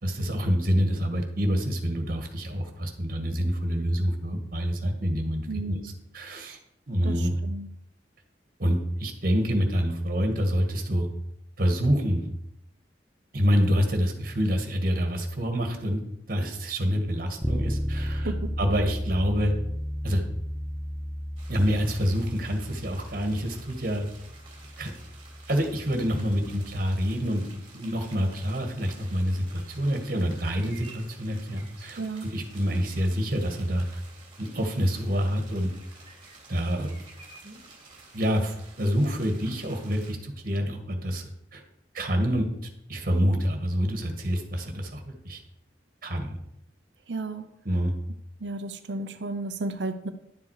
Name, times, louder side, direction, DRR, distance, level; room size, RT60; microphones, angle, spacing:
voice 1, 0.0-5.8 6.1-6.6 6.9-7.4 8.6-11.1 11.6-12.2 13.3-16.0 16.3-18.3 18.6-19.5 20.0-20.2 21.5-24.1 24.8-24.9 25.5-27.4 27.7-34.0 34.4-35.7 36.5-36.9 37.4-37.6 38.1-41.6 41.9-42.5 42.9-45.4 46.0-46.3 47.6-47.9, equal, 55° right, 4 dB, 1.8 m, -27 dB
voice 2, 5.5-5.9 7.0-7.7 18.1-18.5 32.0-32.3 47.1-47.4 48.4-50.1, right 3 dB, 85° right, 9 dB, 0.7 m, -33 dB
Bass guitar, 17.4-27.2, equal, ahead, 0.4 m, -34 dB
sound 1, 21.4-40.1, right 3 dB, 30° right, 3.0 m, -51 dB
11.0 x 7.3 x 4.9 m, 0.78 s
head